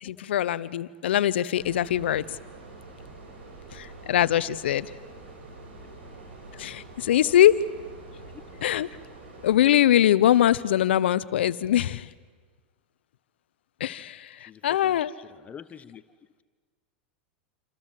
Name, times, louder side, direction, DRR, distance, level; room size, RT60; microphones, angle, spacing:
voice 1, 0.0-2.4 3.7-4.9 6.5-7.6 8.6-8.9 9.4-12.1 13.8-15.1, left 11 dB, 75° left, 18 dB, 0.8 m, -22 dB
sound 1, 1.5-9.6, right 2 dB, 80° right, 7.8 m, -46 dB
voice 2, 14.4-15.0 15.4-16.0, left 8 dB, 25° left, 13 dB, 0.9 m, -46 dB
28.0 x 27.5 x 7.6 m, 1.5 s
hypercardioid pair, 105°, 6 cm